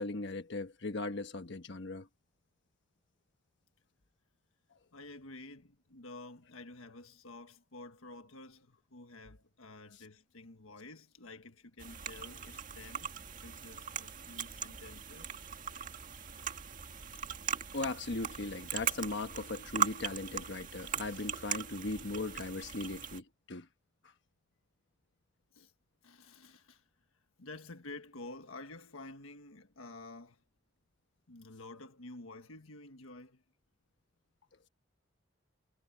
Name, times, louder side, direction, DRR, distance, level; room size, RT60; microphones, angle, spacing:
voice 1, 0.0-2.1 17.7-23.7, left 2 dB, 60° left, 1.2 m, -38 dB
voice 2, 4.9-13.1 13.4-15.3 25.5-25.7 26.0-26.8 27.4-30.4 31.3-33.4, left 2 dB, 90° left, 1.5 m, -50 dB
sound 1, 11.8-23.2, right 7 dB, 40° right, 1.7 m, -39 dB
head